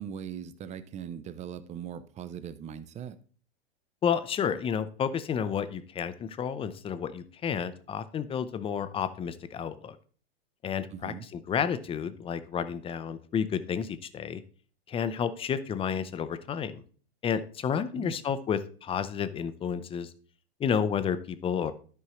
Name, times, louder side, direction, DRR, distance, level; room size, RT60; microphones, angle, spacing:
voice 1, 0.0-3.2 10.9-11.3 17.9-18.2, right 8 dB, 20° right, 0.6 m, -40 dB
voice 2, 4.0-10.0 10.6-11.1 11.5-14.4 14.9-16.8 17.2-20.1 20.6-21.7, left 7 dB, 20° left, 0.6 m, -31 dB
13.0 x 5.5 x 3.1 m
hypercardioid pair, 105°, 31 cm